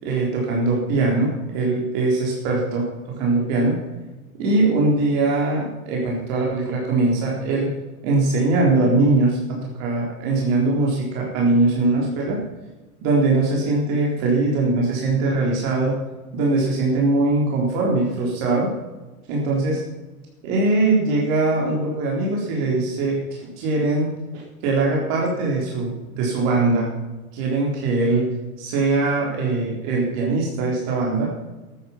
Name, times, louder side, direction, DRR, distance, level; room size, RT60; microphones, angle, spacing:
voice 1, 0.0-3.8 4.4-7.8 8.0-12.4 13.0-16.0 16.3-18.7 19.3-19.8 20.4-26.9 27.3-28.3 28.6-31.3, right 2 dB, 55° right, -2 dB, 4.0 m, -21 dB
12.0 x 9.5 x 5.9 m, 1.2 s
hypercardioid pair, 100°, 43 cm